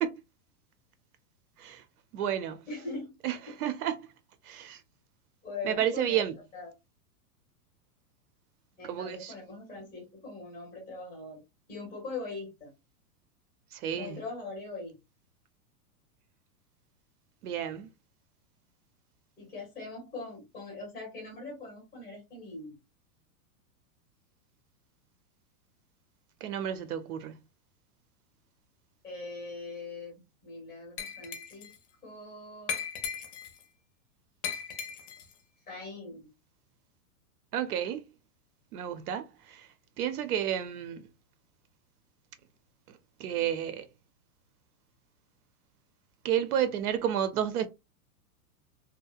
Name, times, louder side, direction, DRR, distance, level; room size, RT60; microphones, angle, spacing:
voice 1, 2.1-2.7 3.2-4.1 4.4-4.8 5.6-6.4 8.9-9.3 13.7-14.2 17.4-17.9 26.4-27.4 37.5-38.1 38.7-39.7 40.0-41.0 42.9-43.9 46.2-47.7, right 10 dB, 75° right, 0.6 m, -31 dB
voice 2, 2.7-3.2 5.4-6.7 8.8-11.4 11.7-12.7 13.9-15.0 19.4-22.8 29.0-31.7 32.0-32.9 35.7-36.3, left 3 dB, 10° left, 0.6 m, -41 dB
Glass, 31.0-31.8 32.7-33.6 34.4-35.3, left 7 dB, 55° left, 0.6 m, -37 dB
2.8 x 2.0 x 2.3 m
supercardioid pair, 180°, 46 cm